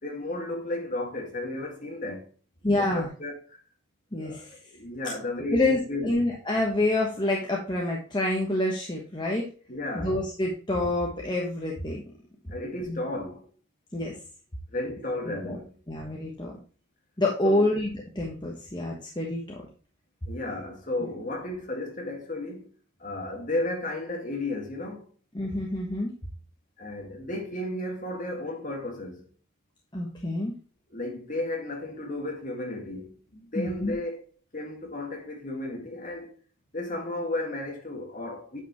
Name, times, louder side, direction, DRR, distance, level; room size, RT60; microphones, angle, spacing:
voice 1, 0.0-2.3 2.8-3.6 4.2-6.2 9.7-10.2 12.5-13.5 14.7-15.7 17.4-17.7 20.3-22.7 23.0-25.1 26.8-29.2 30.9-34.3 34.5-36.4 36.7-38.6, left 2 dB, 40° left, 2.0 m, -33 dB
voice 2, 2.6-3.1 4.1-4.6 5.5-9.5 9.9-12.0 12.9-13.0 13.9-14.1 15.2-15.6 15.9-16.5 17.2-19.6 25.3-26.1 29.9-30.5 33.6-33.9, left 1 dB, 20° left, 1.2 m, -27 dB
9.1 x 5.2 x 3.1 m
head